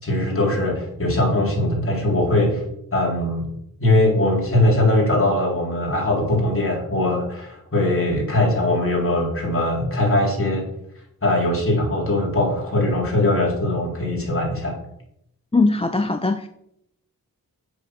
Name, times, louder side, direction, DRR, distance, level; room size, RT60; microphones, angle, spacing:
voice 1, 0.0-2.6 2.9-3.5 3.8-10.6 11.2-14.8, left 1 dB, 40° left, -1 dB, 3.5 m, -21 dB
voice 2, 15.5-16.5, left 3 dB, 15° left, 8 dB, 0.5 m, -20 dB
8.6 x 7.8 x 6.3 m, 0.76 s
wide cardioid pair, 135°, 35 cm